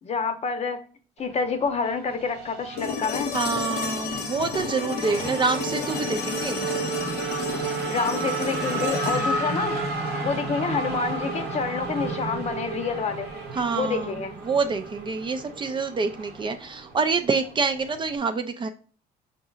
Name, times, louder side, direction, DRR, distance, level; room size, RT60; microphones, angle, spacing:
voice 1, 0.0-0.8 1.2-3.3 7.9-9.8 10.2-13.3 13.7-14.4, left 5 dB, 40° left, 8 dB, 0.7 m, -28 dB
Race car auto racing / Accelerating revving vroom, 1.2-18.2, right 3 dB, 75° right, 1.0 m, -32 dB
sound 1, 2.8-10.8 13.0-13.1, left 6 dB, 90° left, 0.8 m, -33 dB
voice 2, 3.3-6.7 13.5-18.7, right 4 dB, 30° right, 7 dB, 0.4 m, -27 dB
5.2 x 2.8 x 2.3 m, 0.40 s
cardioid pair, 110°, 17 cm